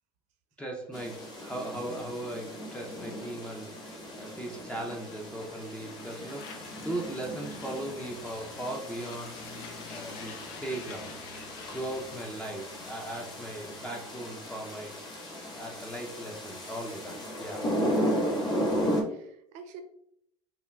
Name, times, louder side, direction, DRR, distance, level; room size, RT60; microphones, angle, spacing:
voice 1, 0.6-9.3 9.9-11.2 11.7-15.0 15.5-17.6, right 1 dB, 10° left, 0 dB, 0.5 m, -38 dB
sound 1, 0.9-19.0, equal, 30° left, 1.2 m, -35 dB
sound 2, 3.3-17.6, left 6 dB, 70° left, 0.6 m, -50 dB
voice 2, 18.5-19.8, right 5 dB, 60° right, 6 dB, 0.6 m, -48 dB
5.4 x 2.2 x 2.3 m, 0.71 s
supercardioid pair, 95°, 14 cm